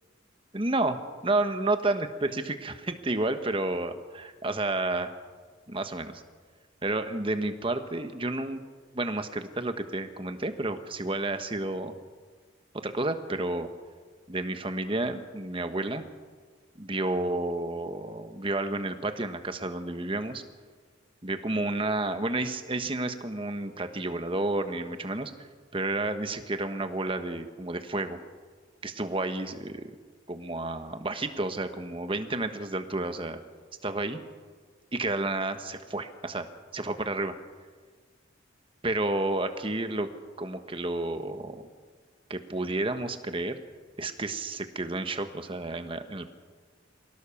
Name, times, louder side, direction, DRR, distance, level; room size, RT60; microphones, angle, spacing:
voice 1, 0.5-5.1 5.7-6.2 6.8-8.6 8.9-12.0 12.8-13.7 14.3-16.0 16.8-20.4 21.2-25.3 25.7-28.2 28.8-30.0 30.3-33.4 33.8-34.2 34.9-36.5 36.7-37.4 38.8-40.1 40.4-41.7 42.3-43.6 44.0-46.3, right 2 dB, 25° right, 8 dB, 1.3 m, -31 dB
24.0 x 17.0 x 7.2 m, 1.5 s
head